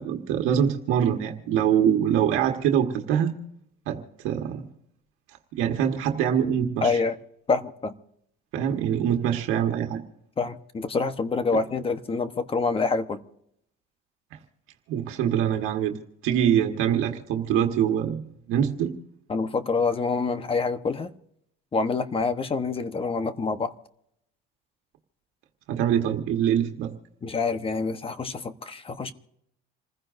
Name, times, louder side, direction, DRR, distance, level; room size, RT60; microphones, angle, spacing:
voice 1, 0.0-3.4 3.9-4.6 5.5-7.0 8.5-10.0 14.3-14.4 14.9-18.2 18.5-18.9 25.7-26.9, right 9 dB, 80° right, 3 dB, 1.5 m, -24 dB
voice 2, 6.8-7.2 7.5-7.9 10.4-13.2 19.3-21.1 21.7-23.7 27.2-29.1, left 4 dB, 25° left, 10 dB, 1.1 m, -26 dB
28.0 x 15.5 x 2.7 m, 0.75 s
cardioid pair, 115°, 21 cm